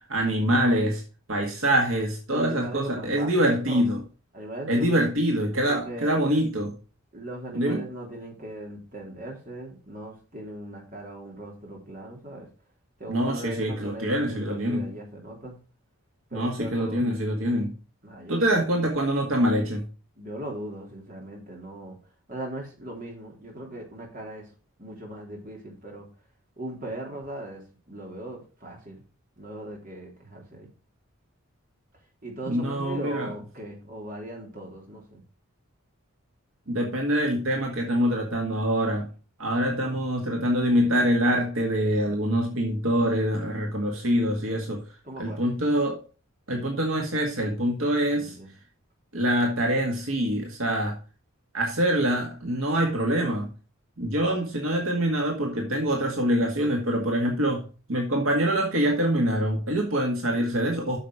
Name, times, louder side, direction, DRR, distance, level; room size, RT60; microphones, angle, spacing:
voice 1, 0.1-1.0 1.3-4.0 4.7-6.7 7.5-7.8 13.1-14.9 16.3-17.7 18.3-19.8 32.5-33.3 36.7-39.1 39.4-44.8 45.2-46.0 46.5-48.4 49.1-51.0 51.5-53.5 54.0-61.0, equal, 70° right, 1 dB, 2.0 m, -25 dB
voice 2, 2.3-3.8 4.3-5.0 5.7-6.2 7.1-12.5 13.0-15.5 16.3-17.2 18.0-18.8 20.1-22.0 22.3-24.5 24.8-26.1 26.6-29.0 29.4-30.7 32.2-35.2 45.0-45.5 48.1-48.5, right 1 dB, 40° right, 0 dB, 3.3 m, -39 dB
9.0 x 6.6 x 4.9 m, 0.35 s
head